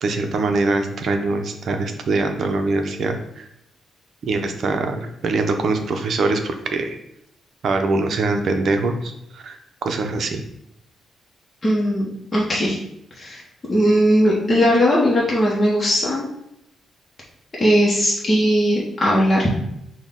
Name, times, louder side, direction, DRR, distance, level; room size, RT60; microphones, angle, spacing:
voice 1, 0.0-3.4 4.2-7.0 7.6-9.6 9.8-10.4, right 3 dB, 55° right, 5 dB, 0.6 m, -23 dB
voice 2, 11.6-12.8 13.2-13.4 13.7-16.3 17.6-19.5, equal, 25° left, -5 dB, 0.9 m, -18 dB
6.1 x 2.2 x 3.6 m, 0.79 s
cardioid pair, 135°, 0 cm